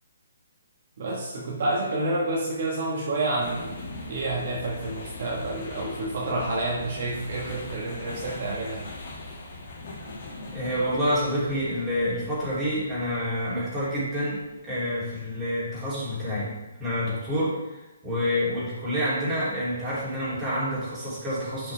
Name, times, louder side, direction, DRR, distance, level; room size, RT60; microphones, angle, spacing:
voice 1, 1.0-3.8 4.1-8.9, right 2 dB, 45° right, -4 dB, 1.4 m, -29 dB
sound 1, 3.4-15.4, left 2 dB, 35° left, 2.1 m, -41 dB
voice 2, 10.5-21.7, equal, 10° right, -11 dB, 3.0 m, -28 dB
11.0 x 5.6 x 3.4 m, 1.1 s
hypercardioid pair, 170°, 0 cm